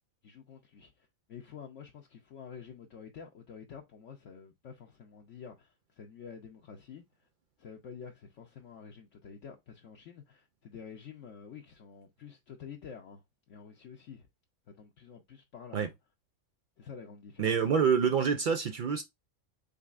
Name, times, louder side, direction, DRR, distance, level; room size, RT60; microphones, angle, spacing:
voice 1, 0.2-7.3 7.6-14.3 14.7-15.9 16.8-17.6, left 6 dB, 65° left, 1.1 m, -49 dB
voice 2, 17.4-19.0, right 6 dB, 85° right, 0.4 m, -27 dB
5.3 x 3.3 x 2.4 m
omnidirectional pair, 1.4 m